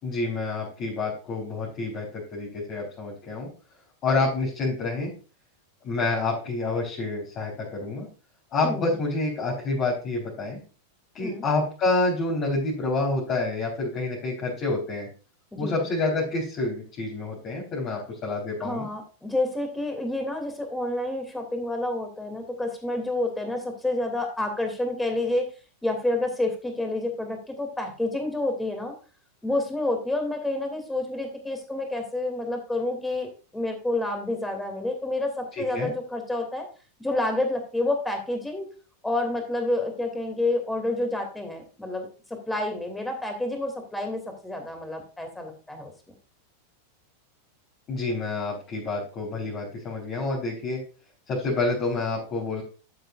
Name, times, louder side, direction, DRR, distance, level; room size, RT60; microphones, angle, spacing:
voice 1, 0.0-3.5 4.0-5.1 5.8-8.1 8.5-10.6 11.1-15.1 15.6-18.9 35.6-35.9 47.9-50.8 51.3-52.6, left 3 dB, 35° left, -5 dB, 4.1 m, -28 dB
voice 2, 8.6-8.9 11.2-11.4 15.5-15.8 18.6-25.5 25.8-28.9 29.4-36.7 37.0-38.7 39.0-45.9, left 2 dB, 5° left, 5 dB, 2.7 m, -29 dB
12.5 x 7.8 x 2.5 m, 0.35 s
figure-of-eight pair, 90°, 0 cm